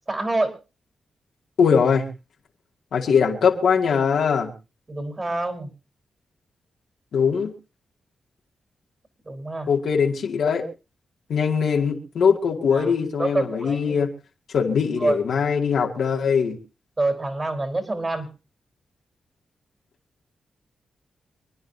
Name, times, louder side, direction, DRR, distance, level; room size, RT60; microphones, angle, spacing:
voice 1, 0.1-0.5 4.9-5.7 9.2-9.7 12.7-12.9 13.2-14.0 15.0-15.2 17.0-18.3, right 2 dB, 35° right, 6 dB, 4.1 m, -26 dB
voice 2, 1.6-2.1 2.9-4.5 7.1-7.5 9.7-10.7 11.3-14.1 14.5-16.6, left 6 dB, 80° left, 1 dB, 2.4 m, -21 dB
27.5 x 10.0 x 2.8 m, 0.30 s
cardioid pair, 55°, 0 cm